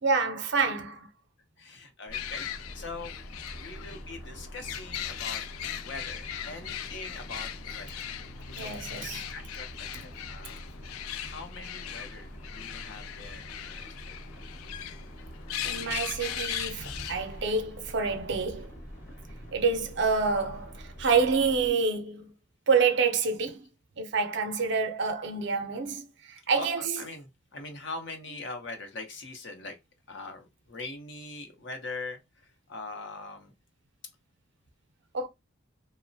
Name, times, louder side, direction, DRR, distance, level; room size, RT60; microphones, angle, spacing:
voice 1, 0.0-1.1 8.6-9.2 15.6-18.7 19.5-22.3 22.7-23.6 24.0-26.0 26.5-27.0 35.1-35.3, right 4 dB, 55° right, 0.5 m, -27 dB
voice 2, 1.6-2.5 2.7-3.2 3.6-5.4 5.8-8.0 8.6-8.7 9.3-10.6 11.2-13.9 26.5-29.8 30.1-33.5, left 3 dB, 55° left, 0.7 m, -42 dB
sound 1, 2.1-17.5, left 10 dB, 85° left, 0.3 m, -39 dB
sound 2, 2.1-21.7, equal, 40° left, 1.1 m, -45 dB
2.9 x 2.0 x 2.6 m
head